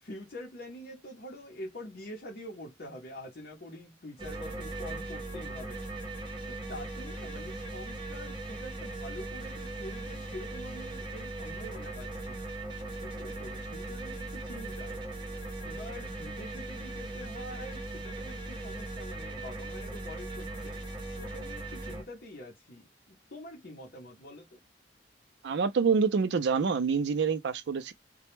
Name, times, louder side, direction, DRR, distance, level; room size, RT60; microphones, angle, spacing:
voice 1, 0.0-5.8 6.5-12.5 13.0-15.0 15.6-20.8 21.2-24.6, left 1 dB, 55° left, 0.7 m, -45 dB
The arrival of the lord of the flies, 4.2-22.0, right 2 dB, 25° right, 0.7 m, -39 dB
voice 2, 25.4-27.9, right 5 dB, 70° right, 0.4 m, -26 dB
2.1 x 2.0 x 3.0 m
head